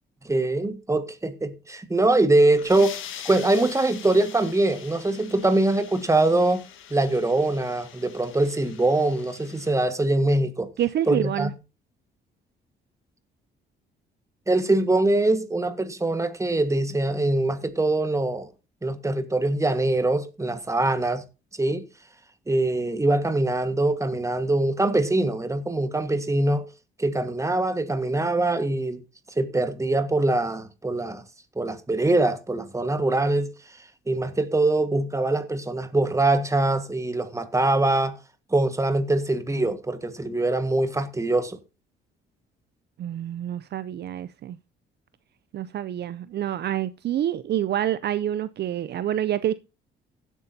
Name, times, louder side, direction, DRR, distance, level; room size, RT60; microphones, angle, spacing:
voice 1, 0.2-6.6 6.9-10.7 11.1-11.5 14.5-18.5 18.8-21.2 21.6-21.8 22.5-26.6 27.0-29.0 29.4-31.2 31.6-33.5 34.1-38.2 38.5-41.6, right 2 dB, 15° right, 1.5 m, -23 dB
sound 1, 2.3-9.7, left 10 dB, 80° left, 1.6 m, -43 dB
voice 2, 10.8-11.5 43.0-44.6 45.5-49.5, right 11 dB, 55° right, 0.5 m, -27 dB
16.5 x 8.2 x 2.7 m
cardioid pair, 90°, 20 cm